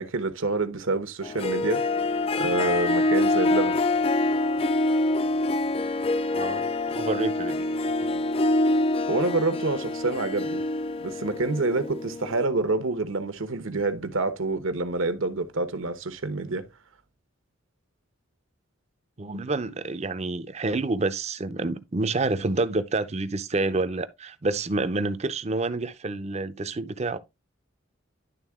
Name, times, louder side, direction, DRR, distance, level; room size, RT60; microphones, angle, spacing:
voice 1, 0.0-1.9 2.4-3.8 9.1-10.6 11.0-16.7, right 3 dB, 75° right, 1.1 m, -27 dB
Harp, 1.2-12.4, left 2 dB, 30° left, 0.3 m, -25 dB
voice 2, 6.3-6.7 6.9-7.7 8.0-8.2 19.2-27.2, right 3 dB, 30° right, 0.6 m, -28 dB
11.0 x 3.7 x 3.6 m
head